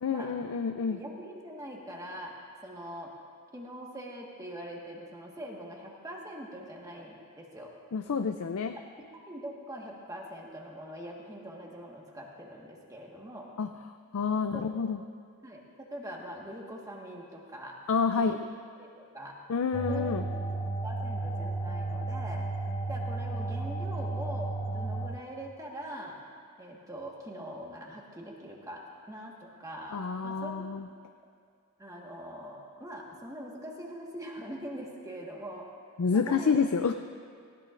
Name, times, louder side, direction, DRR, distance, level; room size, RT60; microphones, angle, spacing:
voice 1, 0.0-1.0 7.9-8.8 13.6-13.7 14.1-15.0 17.9-18.4 19.5-20.2 29.9-30.9 36.0-36.9, left 5 dB, 65° left, 7 dB, 0.4 m, -28 dB
voice 2, 0.8-2.3 2.6-3.1 3.5-7.7 9.0-13.5 14.5-14.7 15.4-17.8 18.1-18.4 18.8-19.3 19.9-22.5 22.9-26.2 26.6-30.6 31.8-35.7 36.1-36.7, equal, 15° right, -2 dB, 1.5 m, -43 dB
sound 1, 19.7-25.1, right 2 dB, 15° left, 1.9 m, -33 dB
18.0 x 16.0 x 2.5 m, 2.1 s
head